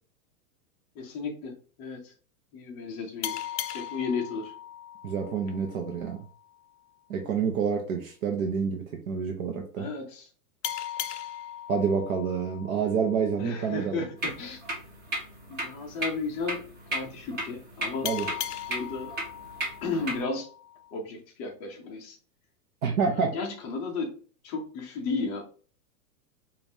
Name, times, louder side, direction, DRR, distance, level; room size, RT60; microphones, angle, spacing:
voice 1, 1.0-2.1 2.5-3.4 3.7-4.5 9.8-10.3 13.4-14.6 15.5-18.1 18.7-19.2 19.8-20.5 20.9-22.2 23.1-24.2 24.4-25.4, left 4 dB, 15° left, 1 dB, 0.4 m, -34 dB
sound 1, 3.2-6.5 10.6-13.9 18.0-21.0, left 11 dB, 90° left, 0.6 m, -38 dB
voice 2, 5.0-6.2 7.1-9.9 11.7-14.0 18.0-18.3 22.8-23.4, right 6 dB, 60° right, 2 dB, 0.8 m, -28 dB
sound 2, 14.2-20.2, right 1 dB, 20° right, 0.9 m, -36 dB
5.0 x 2.5 x 2.7 m, 0.41 s
supercardioid pair, 155°, 46 cm